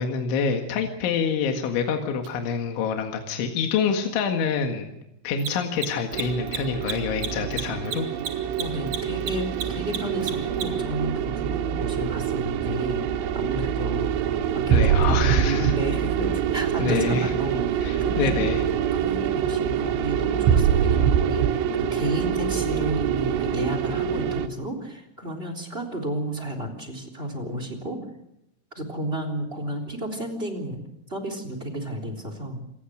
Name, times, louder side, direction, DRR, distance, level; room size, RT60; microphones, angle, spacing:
voice 1, 0.0-4.9 5.2-8.1 14.7-15.7 16.8-17.3 17.8-18.6, left 6 dB, 70° left, 4 dB, 4.1 m, -26 dB
Mechanisms, 2.2-2.3 5.3-10.9, right 8 dB, 50° right, 3.3 m, -32 dB
sound 1, 6.1-24.5, right 9 dB, 75° right, 3.4 m, -25 dB
voice 2, 8.6-18.3 18.9-28.0 28.7-30.8 31.1-32.6, right 1 dB, 15° right, 7 dB, 3.0 m, -32 dB
27.5 x 19.5 x 6.5 m, 0.82 s
omnidirectional pair, 5.8 m